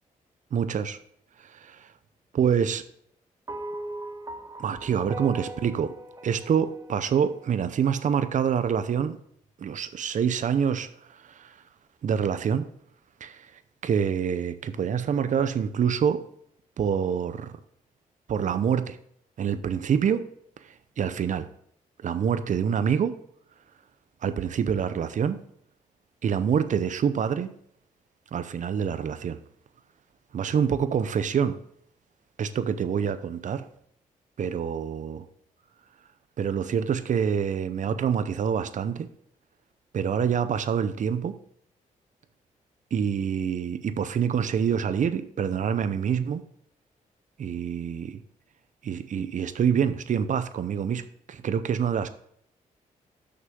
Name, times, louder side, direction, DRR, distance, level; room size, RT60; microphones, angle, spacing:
voice 1, 0.5-1.0 1.5-1.9 2.3-2.8 4.6-5.9 6.2-9.2 9.6-10.9 11.2-11.6 12.0-12.7 13.2-13.5 13.8-16.2 16.8-17.5 18.3-19.0 19.4-20.3 21.0-21.5 22.0-23.1 24.2-25.4 26.2-27.5 28.3-29.4 30.3-31.6 32.4-33.6 34.4-35.3 36.4-39.1 39.9-41.4 42.9-46.4 47.4-48.2 48.8-52.1, right 7 dB, 60° right, 12 dB, 0.7 m, -26 dB
sound 1, 3.5-7.9, right 2 dB, 25° right, 0.8 m, -39 dB
6.3 x 6.0 x 5.3 m, 0.68 s
cardioid pair, 90°, 15 cm